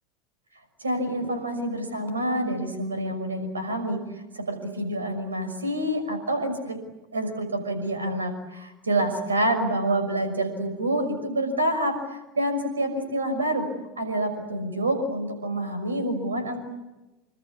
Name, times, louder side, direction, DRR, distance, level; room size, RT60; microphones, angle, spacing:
voice 1, 0.8-4.0 4.3-6.8 7.1-13.7 14.0-16.6, right 1 dB, 80° right, 8 dB, 5.9 m, -27 dB
27.5 x 25.5 x 8.4 m, 1.1 s
figure-of-eight pair, 75°, 0 cm